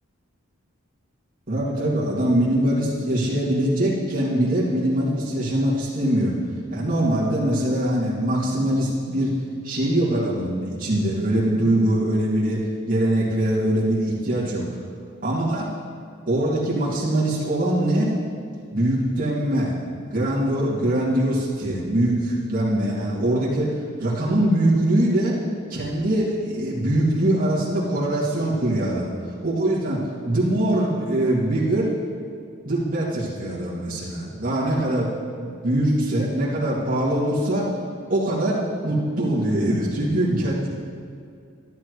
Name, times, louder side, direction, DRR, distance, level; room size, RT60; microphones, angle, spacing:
voice 1, 1.5-6.3 6.7-9.3 9.6-12.6 12.9-14.6 15.2-15.7 16.3-18.1 18.7-19.7 20.1-25.3 25.7-29.1 29.4-31.9 32.6-35.1 35.4-37.7 38.1-40.7, right 1 dB, 40° right, -8 dB, 2.5 m, -22 dB
12.5 x 12.0 x 3.2 m, 2.3 s
head